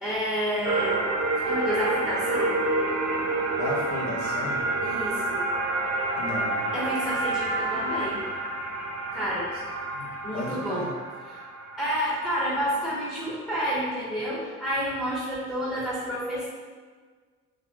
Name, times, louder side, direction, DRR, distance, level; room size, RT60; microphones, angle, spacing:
voice 1, 0.0-1.0 1.4-2.5 4.8-5.4 6.7-8.2 9.1-9.5 10.2-10.9 11.3-11.4 11.8-16.5, equal, 5° left, -10 dB, 1.5 m, -29 dB
sound 1, 0.6-13.3, right 2 dB, 60° right, 0.7 m, -29 dB
voice 2, 3.6-4.6 6.2-6.7 9.9-10.1 10.3-10.9, left 1 dB, 75° left, -3 dB, 1.2 m, -34 dB
4.4 x 3.1 x 3.7 m, 1.5 s
cardioid pair, 90°, 30 cm